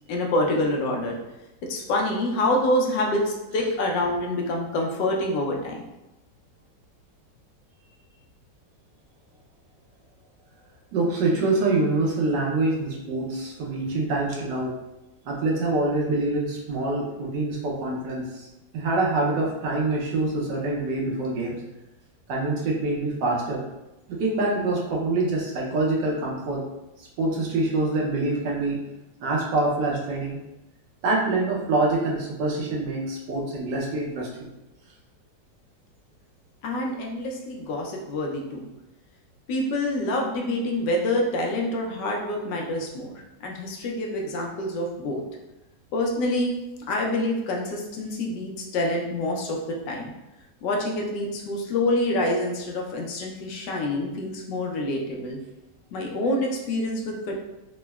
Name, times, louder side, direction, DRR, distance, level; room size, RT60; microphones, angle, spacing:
voice 1, 0.1-1.2 1.7-5.8 36.6-38.7 39.5-43.1 43.4-45.2 45.9-46.6 46.9-50.1 50.6-55.4 55.9-57.4, left 1 dB, 80° left, 0 dB, 1.2 m, -26 dB
voice 2, 10.9-14.7 15.2-18.5 18.7-21.6 22.3-23.6 24.1-26.7 27.0-28.8 29.2-30.4 31.0-34.5, right 2 dB, 80° right, -3 dB, 1.3 m, -25 dB
3.7 x 2.0 x 2.2 m, 0.98 s
omnidirectional pair, 1.9 m